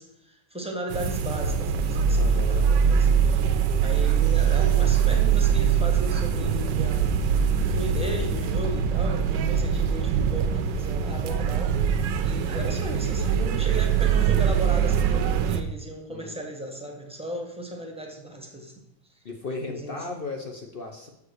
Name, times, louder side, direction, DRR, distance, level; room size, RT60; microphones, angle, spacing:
voice 1, 0.0-7.3 7.7-11.9 12.2-18.8 19.7-20.0, equal, 5° right, 1 dB, 0.9 m, -36 dB
sound 1, 0.9-15.6, right 7 dB, 85° right, 1.3 m, -23 dB
voice 2, 2.2-2.7 16.1-16.4 19.2-21.1, left 3 dB, 50° left, 2 dB, 0.6 m, -36 dB
6.7 x 4.8 x 6.4 m, 0.79 s
omnidirectional pair, 1.9 m